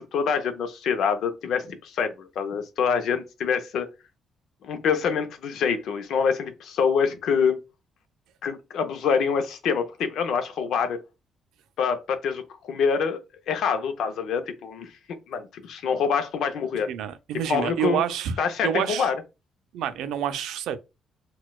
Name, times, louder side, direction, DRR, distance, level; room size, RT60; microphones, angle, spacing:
voice 1, 0.0-3.9 4.6-7.6 8.4-11.0 11.8-14.9 15.3-16.9 17.5-18.0 18.4-19.2, left 6 dB, 75° left, 0.5 m, -26 dB
voice 2, 16.9-18.4 18.6-19.1 19.7-20.8, right 9 dB, 85° right, 0.3 m, -28 dB
4.1 x 2.2 x 2.2 m
cardioid pair, 90°, 0 cm